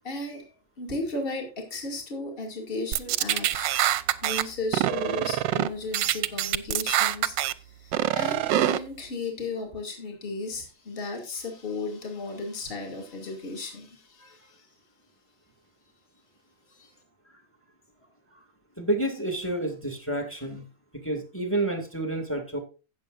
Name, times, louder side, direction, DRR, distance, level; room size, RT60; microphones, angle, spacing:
voice 1, 0.0-0.4 0.8-3.7 4.2-7.3 7.8-14.6 16.7-16.9, left 3 dB, 25° left, 2 dB, 2.5 m, -35 dB
sound 1, 2.9-4.4 4.7-5.7 5.9-7.5 7.9-8.8, right 13 dB, 70° right, 1.2 m, -25 dB
voice 2, 18.8-20.6 21.0-22.6, right 1 dB, 5° left, 5 dB, 2.2 m, -29 dB
16.5 x 7.3 x 2.5 m, 0.32 s
omnidirectional pair, 2.2 m